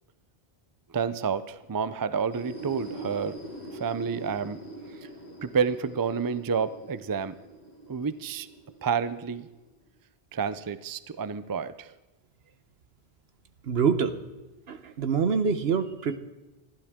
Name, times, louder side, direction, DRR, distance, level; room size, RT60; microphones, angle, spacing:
voice 1, 0.9-3.4 3.7-4.6 4.9-5.1 5.4-7.4 7.9-8.5 8.8-9.5 10.3-11.9, right 6 dB, 30° right, 14 dB, 0.4 m, -29 dB
sound 1, 2.2-9.8, right 1 dB, 40° left, 2.4 m, -43 dB
voice 2, 13.6-14.2 14.7-16.2, right 6 dB, 75° right, 11 dB, 1.2 m, -25 dB
27.0 x 12.0 x 3.7 m, 1.1 s
omnidirectional pair, 1.1 m